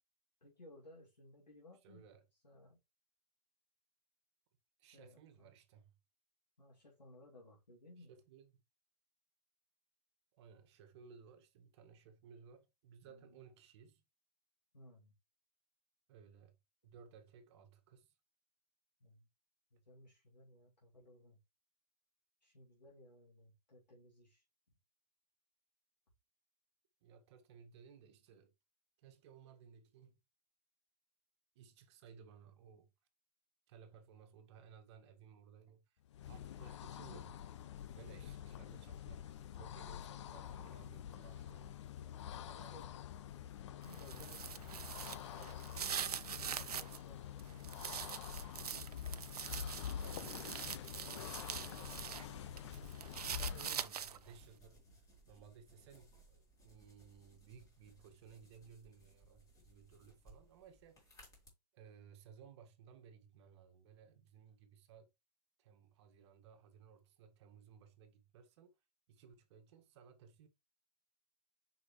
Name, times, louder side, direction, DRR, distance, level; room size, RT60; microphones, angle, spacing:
voice 1, 0.4-2.8 4.9-5.5 6.6-8.2 13.1-13.5 14.7-15.1 19.0-19.3 19.7-21.4 22.4-24.4 42.5-42.9 43.6-44.7 45.1-48.2, left 1 dB, 85° left, 2.4 m, -60 dB
voice 2, 1.8-2.2 4.8-6.0 8.0-8.6 10.3-14.0 16.1-16.5 16.8-18.1 27.0-28.5 29.0-30.2 31.5-32.9 33.7-35.9 36.3-37.4 37.8-41.8 42.4-42.7 50.0-52.0 52.4-61.1 61.7-65.1 65.6-68.7 69.1-70.5, right 7 dB, 40° right, 1.6 m, -60 dB
sound 1, 36.1-53.9, left 9 dB, 45° left, 0.6 m, -47 dB
sound 2, 43.8-47.0 47.4-52.2 52.6-54.3, right 8 dB, 65° right, 0.7 m, -44 dB
sound 3, 51.5-61.5, equal, 15° left, 3.4 m, -63 dB
6.6 x 5.6 x 3.1 m
figure-of-eight pair, 125°, 21 cm